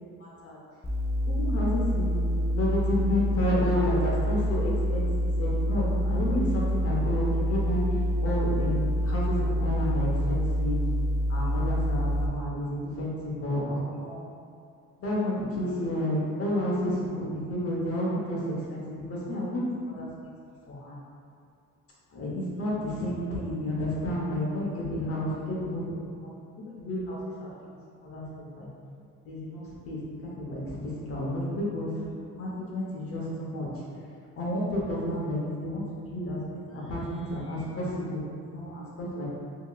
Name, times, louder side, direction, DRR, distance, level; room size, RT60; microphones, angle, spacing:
voice 1, 0.2-0.6 1.3-7.8 8.2-10.8 11.3-14.2 15.0-20.1 20.7-20.9 22.1-25.8 26.2-26.3 26.8-27.7 28.0-28.2 28.6-28.7 29.2-33.7 34.4-38.2 38.5-39.3, left 1 dB, 50° left, -5 dB, 0.9 m, -31 dB
sound 1, 0.8-12.3, equal, 10° left, 0.3 m, -27 dB
2.8 x 2.7 x 2.3 m, 2.3 s
cardioid pair, 90°, 30 cm